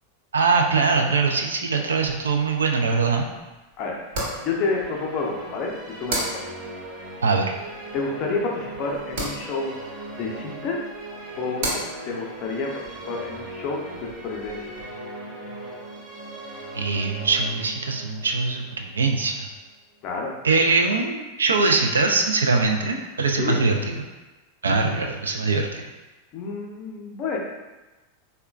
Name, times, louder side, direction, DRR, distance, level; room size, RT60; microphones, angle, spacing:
voice 1, 0.3-3.3 7.2-7.5 16.7-19.5 20.4-23.8 24.6-25.8, right 4 dB, 70° right, 2 dB, 0.3 m, -22 dB
sound 1, 2.0-14.8, right 1 dB, 50° right, 0.9 m, -37 dB
Musical instrument, 4.0-19.4, right 1 dB, 20° right, 0.7 m, -39 dB
voice 2, 4.4-6.4 7.9-9.7 10.2-10.9 11.4-14.8 20.0-20.3 23.4-23.6 24.7-25.1 26.3-27.4, left 4 dB, 40° left, -1 dB, 0.5 m, -29 dB
3.6 x 2.1 x 2.3 m, 1.1 s
figure-of-eight pair, 90°, 0 cm